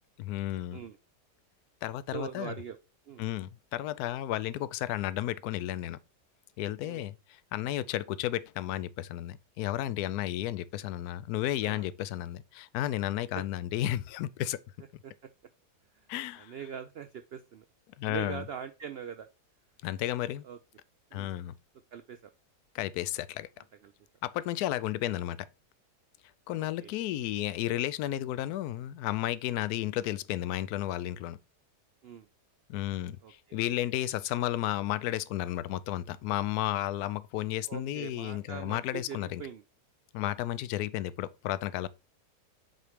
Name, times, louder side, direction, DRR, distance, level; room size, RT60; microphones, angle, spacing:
voice 1, 0.2-0.8 1.8-2.5 3.2-6.0 6.6-14.6 16.1-16.5 18.0-18.4 19.8-20.4 21.1-21.5 22.7-23.5 24.2-25.5 26.5-31.4 32.7-39.4 40.1-41.9, left 13 dB, 75° left, 1.1 m, -33 dB
voice 2, 2.1-2.8 3.1-3.2 6.8-7.1 11.6-11.8 13.4-13.5 15.0-15.3 15.9-16.1 16.4-17.6 18.0-19.3 20.4-20.6 21.1-21.3 21.9-22.3 23.8-23.9 26.6-26.9 32.0-32.3 33.2-33.6 37.7-39.6, right 8 dB, 90° right, 0.5 m, -42 dB
7.9 x 3.2 x 5.0 m
omnidirectional pair, 1.7 m